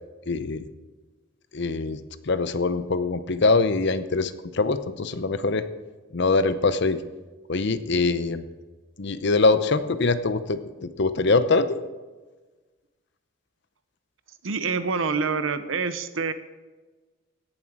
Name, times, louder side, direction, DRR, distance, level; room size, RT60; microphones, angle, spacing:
voice 1, 0.3-0.6 1.5-5.7 6.1-7.0 7.5-8.4 9.0-11.8, left 3 dB, 60° left, 12 dB, 0.7 m, -23 dB
voice 2, 14.4-16.3, right 5 dB, 80° right, 11 dB, 0.8 m, -26 dB
17.0 x 7.3 x 4.7 m, 1.3 s
head